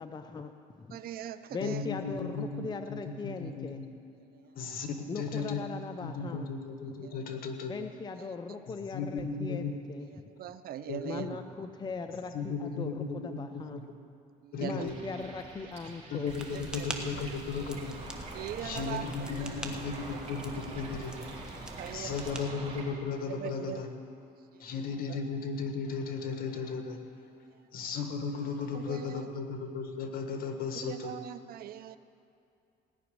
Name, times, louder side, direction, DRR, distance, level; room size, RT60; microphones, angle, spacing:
voice 1, 0.0-1.0 1.5-3.8 5.1-6.5 7.7-10.1 11.0-13.8 14.6-16.3, left 4 dB, 25° left, 7 dB, 0.6 m, -39 dB
voice 2, 0.9-1.8 4.3-4.5 5.4-5.6 7.0-7.2 10.4-11.4 14.4-14.9 16.5-17.4 18.3-19.9 21.8-22.4 23.3-23.8 24.5-24.7 25.1-25.2 28.7-29.3 30.8-32.0, right 10 dB, 60° right, 13 dB, 0.6 m, -41 dB
voice 3, 1.6-3.8 4.5-5.6 6.0-7.7 8.7-9.7 10.9-11.3 12.3-13.8 14.5-14.9 16.1-17.9 18.2-21.6 21.9-23.9 24.6-27.0 27.7-31.1, left 5 dB, 60° left, 5 dB, 1.7 m, -36 dB
sound 1, 14.8-22.9, right 3 dB, 40° right, 3.8 m, -45 dB
sound 2, 16.3-22.7, right 1 dB, 5° right, 1.2 m, -44 dB
17.0 x 6.1 x 9.7 m, 2.5 s
cardioid pair, 110°, 17 cm